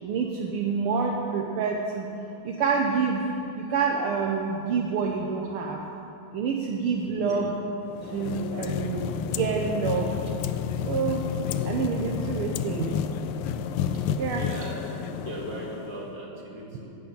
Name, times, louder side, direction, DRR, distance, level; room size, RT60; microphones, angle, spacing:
voice 1, 0.0-2.1 2.4-3.2 3.5-5.8 6.3-7.6 8.1-10.1 10.9-11.2 11.7-12.9 14.2-14.4, right 5 dB, 80° right, 0 dB, 1.8 m, -27 dB
voice 2, 7.1-7.5 14.2-16.9, equal, 45° right, -3 dB, 2.8 m, -38 dB
sound 1, 7.9-16.2, left 8 dB, 85° left, 1.5 m, -30 dB
15.5 x 6.4 x 8.7 m, 2.7 s
omnidirectional pair, 2.4 m